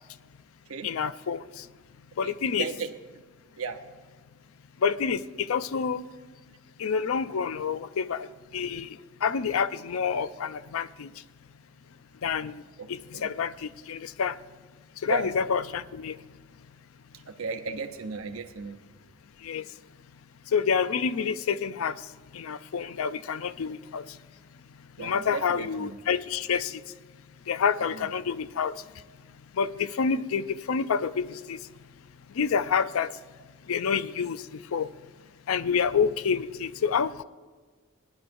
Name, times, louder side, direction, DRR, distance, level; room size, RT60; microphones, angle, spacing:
voice 1, 0.8-1.6 2.2-2.7 4.8-6.1 6.8-8.3 8.5-11.1 12.2-12.6 12.9-14.4 15.0-16.1 19.4-19.6 20.5-22.0 22.3-24.0 25.0-26.8 27.5-28.7 29.6-31.6 32.4-33.1 33.7-34.4 34.7-34.9 35.5-37.2, left 6 dB, 80° left, 15 dB, 0.4 m, -28 dB
voice 2, 2.2-2.9 3.6-3.8 12.8-13.3 15.0-15.3 17.1-18.8 25.0-26.0 27.8-28.1, right 5 dB, 75° right, 7 dB, 0.8 m, -35 dB
20.0 x 10.5 x 2.6 m, 1.4 s
head